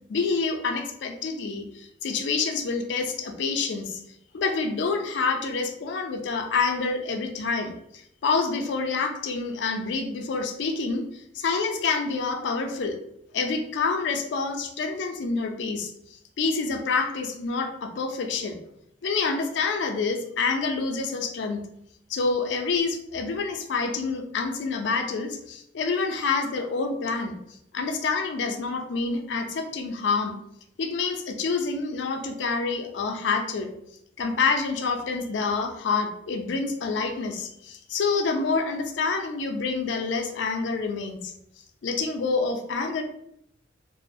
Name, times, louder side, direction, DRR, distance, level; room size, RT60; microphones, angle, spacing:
voice 1, 0.1-4.0 4.3-13.0 13.3-15.9 16.4-18.6 19.0-21.6 22.1-27.4 27.7-30.4 30.8-33.7 34.2-41.3 41.8-43.0, left 4 dB, 65° left, 5 dB, 0.4 m, -27 dB
2.9 x 2.0 x 2.5 m, 0.74 s
head